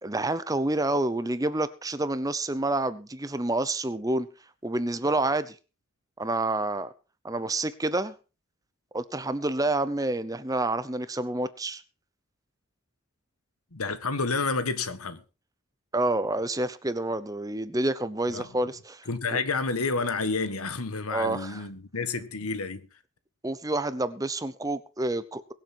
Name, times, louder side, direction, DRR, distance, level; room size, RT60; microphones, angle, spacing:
voice 1, 0.0-4.3 4.6-5.6 6.2-6.9 7.2-8.1 8.9-11.8 15.9-19.4 21.1-21.6 23.4-25.5, right 2 dB, 15° right, 0.7 m, -28 dB
voice 2, 13.7-15.2 18.3-18.5 19.1-22.8, left 4 dB, 85° left, 1.5 m, -29 dB
22.5 x 7.6 x 4.4 m
head